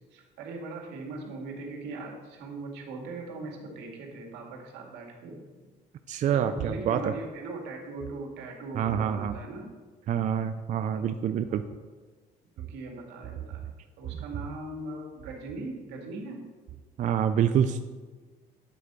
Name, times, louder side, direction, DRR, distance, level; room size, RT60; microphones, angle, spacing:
voice 1, 0.1-5.4 6.3-9.7 10.9-11.1 11.5-11.6 12.6-16.4, right 2 dB, 90° right, 0 dB, 2.1 m, -40 dB
voice 2, 6.1-7.1 8.7-9.3 10.1-11.6 17.0-17.8, right 8 dB, 45° right, 9 dB, 0.4 m, -26 dB
9.2 x 4.8 x 6.7 m, 1.4 s
cardioid pair, 110°, 17 cm